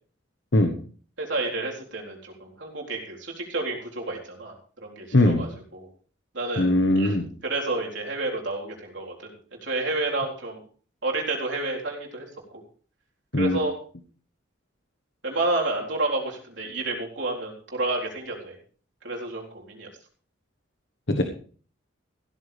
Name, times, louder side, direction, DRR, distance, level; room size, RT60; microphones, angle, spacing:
voice 1, 1.2-4.5 4.8-5.9 6.3-6.7 7.0-9.3 9.6-10.6 11.0-12.3 12.5-12.6 13.4-13.8 15.2-18.6 19.0-19.9, right 2 dB, 65° right, -1 dB, 4.0 m, -30 dB
voice 2, 5.1-5.4 6.6-7.3 13.3-13.6 21.1-21.2, left 1 dB, 65° left, 5 dB, 1.2 m, -20 dB
15.5 x 13.5 x 3.4 m, 0.42 s
head